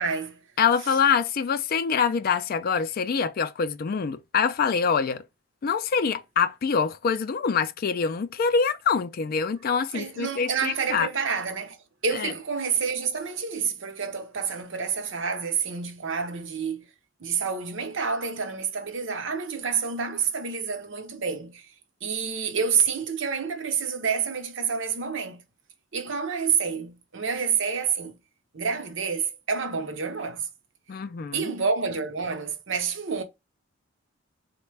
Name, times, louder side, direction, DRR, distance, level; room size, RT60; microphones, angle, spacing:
voice 1, 0.0-0.4 9.9-11.8 12.0-16.9 17.2-21.7 22.0-25.4 25.9-28.2 28.5-30.5 31.3-33.2, right 6 dB, 70° right, 0.7 m, -28 dB
voice 2, 0.6-5.2 5.6-11.1 12.1-12.3 30.9-31.5, left 6 dB, 50° left, 0.4 m, -25 dB
4.0 x 2.2 x 3.2 m
head